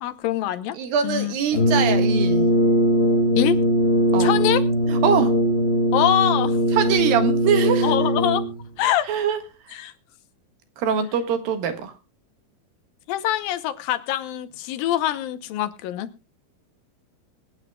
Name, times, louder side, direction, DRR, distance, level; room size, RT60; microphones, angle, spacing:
voice 1, 0.0-0.8 1.0-1.4 3.4-3.6 4.2-4.6 5.9-7.0 7.8-8.5 8.8-9.1 9.7-9.9 13.1-16.1, left 12 dB, 80° left, 2.5 m, -24 dB
voice 2, 0.7-2.5 4.1-4.3 4.9-5.4 6.7-7.9 9.1-9.4 10.8-11.9, right 7 dB, 75° right, 3.3 m, -23 dB
Brass instrument, 1.5-8.7, equal, 50° left, 0.7 m, -20 dB
25.0 x 8.9 x 2.3 m
omnidirectional pair, 4.2 m